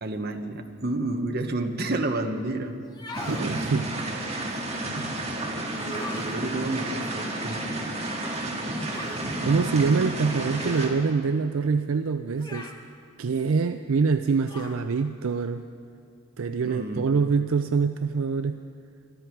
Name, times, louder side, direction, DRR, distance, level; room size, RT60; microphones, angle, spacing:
voice 1, 0.0-2.9 6.1-7.6 16.6-17.3, right 2 dB, 45° right, 5 dB, 1.0 m, -30 dB
sound 1, 2.8-3.5 5.7-6.4 8.9-9.2 10.6-11.0 12.4-12.8 14.5-14.8, left 2 dB, 20° left, 0.9 m, -39 dB
sound 2, 3.1-10.9, right 1 dB, 30° right, 1.8 m, -31 dB
voice 2, 3.3-3.9 4.9-5.1 9.1-12.7 13.2-15.6 16.4-18.6, right 5 dB, 70° right, 9 dB, 0.4 m, -25 dB
23.5 x 13.0 x 4.6 m, 2.3 s
head